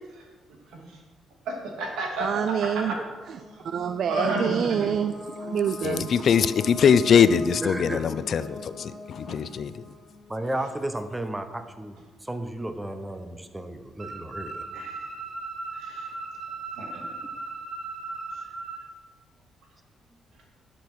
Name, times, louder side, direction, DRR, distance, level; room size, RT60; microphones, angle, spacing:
voice 1, 1.4-2.3 2.7-2.9 4.1-4.5 4.8-4.9 9.3-9.4 14.7-14.9 15.8-16.1 16.8-17.1, right 2 dB, 85° right, 0 dB, 3.0 m, -31 dB
voice 2, 2.2-3.0 3.3-3.4 3.6-6.1, right 8 dB, 60° right, 12 dB, 0.4 m, -27 dB
sound 1, 3.0-10.6, left 2 dB, 20° left, 1.9 m, -41 dB
voice 3, 5.8-9.7, left 7 dB, 55° left, 14 dB, 0.5 m, -22 dB
voice 4, 7.6-8.1 10.3-14.9, right 1 dB, 10° right, 8 dB, 0.9 m, -33 dB
sound 2, 14.0-18.8, right 3 dB, 40° right, 2.7 m, -37 dB
11.5 x 6.9 x 6.2 m, 1.3 s
cardioid pair, 100°, 0 cm